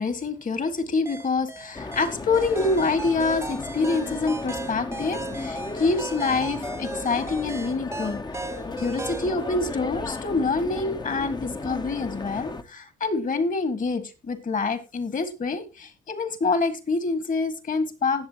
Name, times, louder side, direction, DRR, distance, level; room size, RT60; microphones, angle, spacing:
voice 1, 0.0-8.2 8.8-18.3, left 3 dB, 40° left, 1.9 m, -26 dB
sound 1, 1.1-9.3, right 3 dB, 15° right, 0.8 m, -37 dB
sound 2, 1.7-12.6, left 3 dB, 20° left, 0.8 m, -35 dB
19.0 x 7.1 x 2.9 m
cardioid pair, 90°, 20 cm